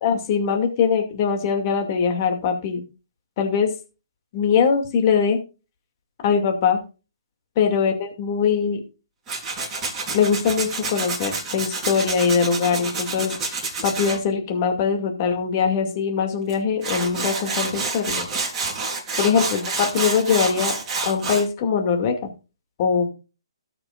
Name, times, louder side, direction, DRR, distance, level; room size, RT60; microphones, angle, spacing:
voice 1, 0.0-2.8 3.4-3.7 4.3-5.4 6.2-6.8 7.6-8.8 10.1-18.3 19.2-20.8 21.0-22.1 22.8-23.1, left 6 dB, 35° left, 4 dB, 2.3 m, -22 dB
Tools, 9.3-14.2 16.5-16.6 16.8-21.4, right 3 dB, 15° right, 4.0 m, -28 dB
18.0 x 6.8 x 2.5 m, 0.31 s
hypercardioid pair, 145°, 3 cm